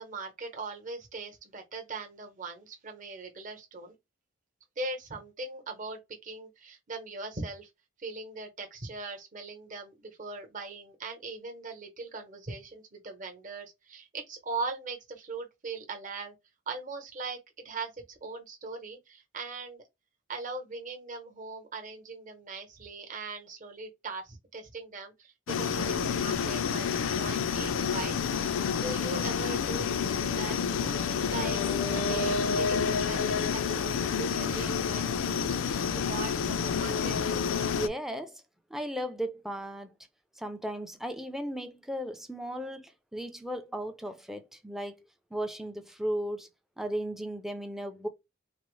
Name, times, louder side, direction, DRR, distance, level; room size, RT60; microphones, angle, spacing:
voice 1, 0.0-3.9 4.8-7.7 8.0-16.3 16.7-17.4 17.6-19.8 20.3-28.1 28.8-29.9 30.3-30.9 31.3-37.3, right 3 dB, 40° right, 0.9 m, -40 dB
sound 1, 25.5-37.9, left 6 dB, 85° left, 0.4 m, -29 dB
voice 2, 37.8-38.4 38.7-39.9 40.4-45.0 45.3-46.5 46.8-48.1, equal, ahead, 0.4 m, -36 dB
4.0 x 2.0 x 3.0 m
head